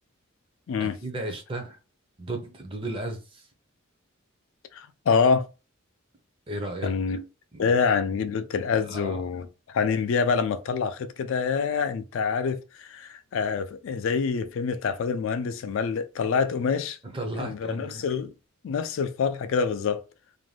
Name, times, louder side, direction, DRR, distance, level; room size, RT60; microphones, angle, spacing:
voice 1, 0.8-1.8 2.2-3.5 6.5-6.9 7.5-7.7 8.9-9.2 17.0-18.0, right 1 dB, 25° right, 0.5 m, -34 dB
voice 2, 4.7-5.5 6.8-7.2 7.6-17.0 17.4-18.3 18.6-20.0, left 5 dB, 65° left, 0.3 m, -26 dB
2.5 x 2.1 x 3.2 m
head